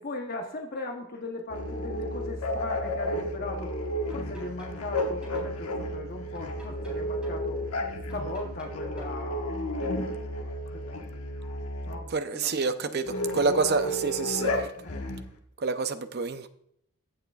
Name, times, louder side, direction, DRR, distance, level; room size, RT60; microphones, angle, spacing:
voice 1, 0.0-3.7 4.1-7.6 8.1-10.0 10.4-11.0 11.8-13.8 14.8-15.2, left 2 dB, 45° left, 0.9 m, -39 dB
sound 1, 1.5-12.0 13.0-15.3, equal, 80° left, 1.4 m, -32 dB
sound 2, 3.3-3.4 4.1-5.5 6.3-7.4 8.1-9.2, right 2 dB, 5° right, 3.8 m, -47 dB
voice 2, 12.1-14.7 15.6-16.5, right 4 dB, 45° right, 0.6 m, -28 dB
15.5 x 6.5 x 2.4 m
head